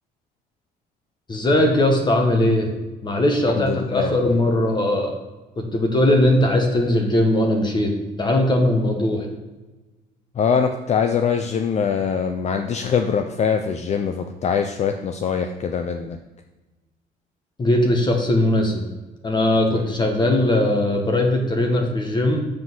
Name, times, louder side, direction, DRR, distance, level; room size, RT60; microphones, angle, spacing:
voice 1, 1.3-2.7 3.0-5.1 5.6-7.9 8.2-9.3 17.6-18.9 19.2-22.4, left 1 dB, 25° left, 3 dB, 1.1 m, -19 dB
voice 2, 3.6-4.3 10.4-16.2 19.7-19.8, left 6 dB, 40° left, 6 dB, 0.5 m, -23 dB
7.5 x 3.8 x 6.1 m, 1.2 s
cardioid pair, 110°, 17 cm